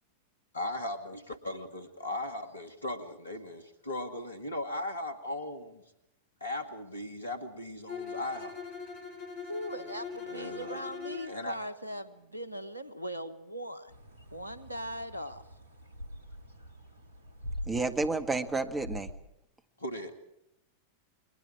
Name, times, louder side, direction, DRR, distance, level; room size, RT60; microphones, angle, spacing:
voice 1, 0.5-5.8 6.4-8.6 10.3-10.9 11.3-11.6 19.8-20.1, left 1 dB, 75° left, 8 dB, 2.2 m, -38 dB
Bowed string instrument, 7.9-11.4, left 5 dB, 40° left, 3.5 m, -41 dB
voice 2, 9.5-13.9 14.3-15.4, equal, 85° right, 15 dB, 1.3 m, -39 dB
sound 1, 13.9-19.1, left 1 dB, 70° right, 2.8 m, -44 dB
voice 3, 17.7-19.1, right 3 dB, 15° right, 8 dB, 1.7 m, -30 dB
30.0 x 22.5 x 4.8 m, 0.83 s
figure-of-eight pair, 90°, 0 cm